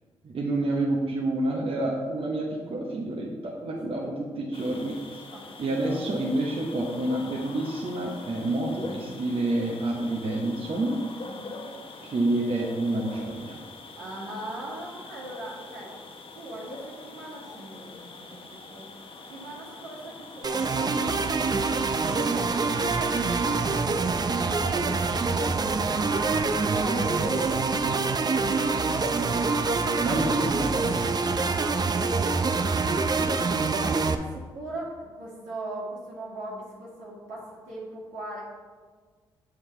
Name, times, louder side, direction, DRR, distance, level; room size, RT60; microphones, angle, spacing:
voice 1, 0.2-5.2 5.6-11.0 12.0-13.6 30.0-31.0 33.1-33.3, right 2 dB, 50° right, -2 dB, 1.1 m, -28 dB
sound 1, 4.5-23.6, left 3 dB, 50° left, 1.0 m, -44 dB
voice 2, 5.3-6.0 11.2-11.7 13.9-15.9 16.3-18.9 19.3-21.7 22.0-30.3 31.4-33.1 33.6-38.4, right 1 dB, 80° right, -5 dB, 2.0 m, -40 dB
sound 2, 20.4-34.1, right 4 dB, 35° right, 0.6 m, -25 dB
7.2 x 6.4 x 3.3 m, 1.5 s
hypercardioid pair, 40°, 12 cm